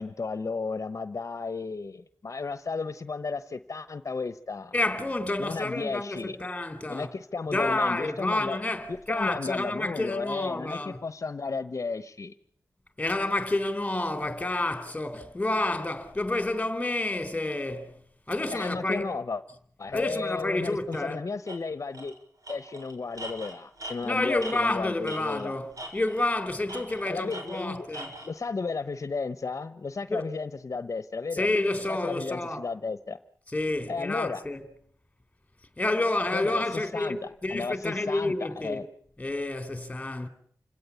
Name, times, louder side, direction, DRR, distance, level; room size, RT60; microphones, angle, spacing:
voice 1, 0.0-4.7 5.4-6.4 6.9-8.6 8.9-12.3 18.5-19.4 19.8-22.2 22.5-25.6 27.0-27.9 28.2-31.5 31.9-33.2 33.9-34.4 36.3-38.9, left 4 dB, 60° left, 1.0 m, -34 dB
voice 2, 4.7-7.1 7.5-11.0 13.0-17.9 18.3-19.2 19.9-21.2 24.0-28.1 30.1-30.3 31.3-32.7 33.5-34.6 35.8-38.9 39.2-40.3, left 2 dB, 20° left, 3.8 m, -29 dB
Tools, 20.9-21.1 21.5-21.6 21.9-22.1 22.4-25.5 25.8-26.3 26.7-28.3, right 1 dB, 75° right, 6.9 m, -41 dB
28.5 x 17.5 x 8.4 m
wide cardioid pair, 75°, 6 cm